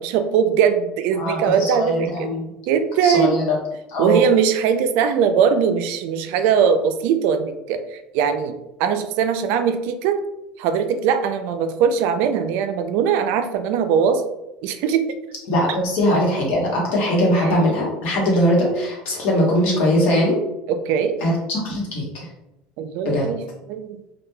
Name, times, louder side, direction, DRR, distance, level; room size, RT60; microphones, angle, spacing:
voice 1, 0.0-2.3 2.7-3.5 4.0-10.2 10.6-14.2 14.6-15.1 17.4-17.5 20.7-21.2 22.8-23.4 23.7-24.0, right 7 dB, 70° right, 8 dB, 0.3 m, -20 dB
voice 2, 1.2-2.5 3.0-3.6 3.9-4.2 15.5-20.4 21.2-22.3 23.0-23.3, equal, 60° left, -3 dB, 1.1 m, -21 dB
2.9 x 2.2 x 2.2 m, 0.91 s
supercardioid pair, 115°, 3 cm